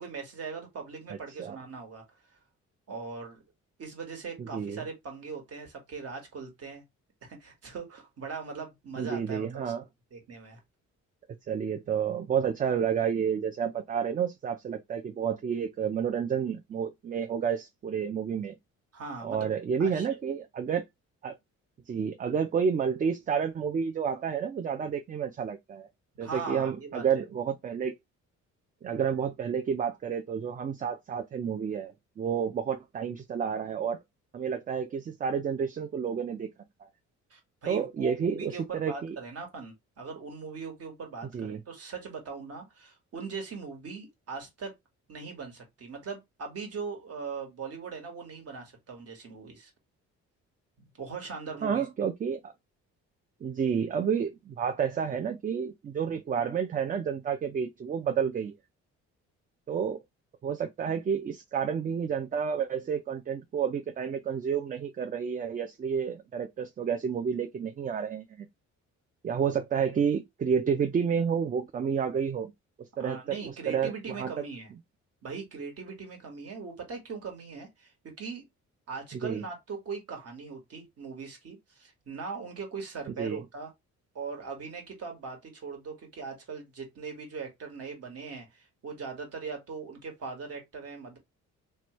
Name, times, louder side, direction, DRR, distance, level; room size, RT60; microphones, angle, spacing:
voice 1, 0.0-2.0 2.9-3.4 3.8-6.8 7.2-9.7 10.1-10.6 18.9-19.5 19.8-20.2 26.2-27.0 37.3-44.8 45.1-49.7 50.9-51.9 73.0-74.7 75.2-78.5 78.9-83.7 84.1-91.2, right 5 dB, 55° right, 1.4 m, -40 dB
voice 2, 4.4-4.8 9.0-9.8 11.5-18.5 19.2-20.8 21.2-21.3 21.9-25.9 26.2-27.9 28.8-34.0 34.3-36.5 36.8-36.9 37.7-39.2 41.3-41.6 51.6-52.5 53.4-58.5 59.7-60.0 60.4-68.5 69.2-72.5 72.8-73.9 74.2-74.3 79.1-79.4 83.2-83.4, right 7 dB, 30° right, 0.3 m, -30 dB
2.9 x 2.2 x 3.0 m
cardioid pair, 90°, 30 cm